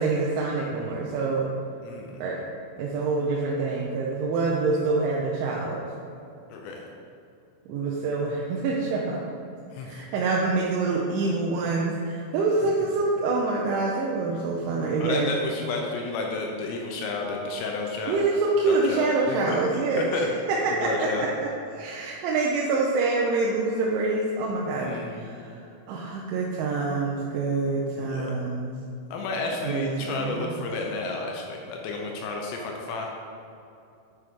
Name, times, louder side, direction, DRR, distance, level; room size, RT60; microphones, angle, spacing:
voice 1, 0.0-1.5 2.2-2.5 2.8-5.9 7.7-9.4 9.8-15.3 18.1-20.2 20.5-25.6 25.9-28.8 29.6-30.6, right 3 dB, 80° right, -3 dB, 3.1 m, -26 dB
voice 2, 1.8-2.3 6.5-6.9 9.7-10.0 15.0-18.2 18.7-20.3 20.8-21.3 24.8-25.3 28.0-28.4 29.1-33.1, left 3 dB, 80° left, 0 dB, 2.6 m, -31 dB
9.2 x 8.0 x 3.7 m, 2.7 s
omnidirectional pair, 5.7 m